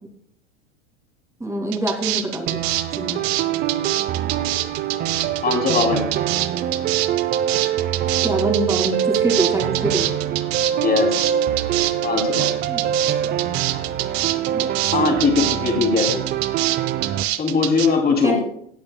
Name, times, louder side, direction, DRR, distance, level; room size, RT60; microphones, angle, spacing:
voice 1, 1.4-2.6 3.0-3.2 8.2-10.1 12.7-13.4 14.5-15.1 16.1-16.3 18.2-18.4, right 1 dB, 10° right, 1 dB, 2.4 m, -26 dB
sound 1, 1.7-17.9, right 15 dB, 55° right, 0.9 m, -25 dB
sound 2, 2.5-17.2, right 11 dB, 25° right, 0.5 m, -24 dB
voice 2, 5.4-6.1 10.7-11.3 12.0-12.5 14.9-16.1 17.4-18.4, left 5 dB, 25° left, 2 dB, 2.8 m, -20 dB
18.0 x 8.6 x 2.2 m, 0.66 s
hypercardioid pair, 85°, 36 cm